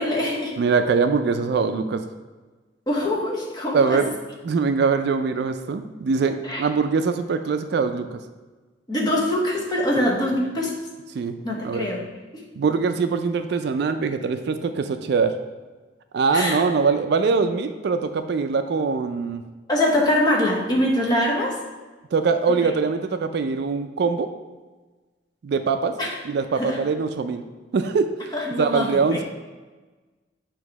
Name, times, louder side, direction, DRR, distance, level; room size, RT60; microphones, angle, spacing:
voice 1, 0.0-0.5 2.9-4.0 6.5-6.6 8.9-10.7 11.4-12.0 16.3-16.6 19.7-21.5 26.0-26.1 26.6-26.8 28.3-29.2, left 1 dB, 20° left, -3 dB, 1.1 m, -23 dB
voice 2, 0.6-2.1 3.7-4.1 4.4-8.2 9.9-10.4 11.1-11.4 11.6-11.9 12.6-15.3 16.1-19.4 22.1-24.3 25.4-26.0 26.2-27.4 27.7-28.1 28.6-29.2, right 5 dB, 60° right, 9 dB, 0.3 m, -23 dB
7.3 x 3.0 x 4.6 m, 1.3 s
head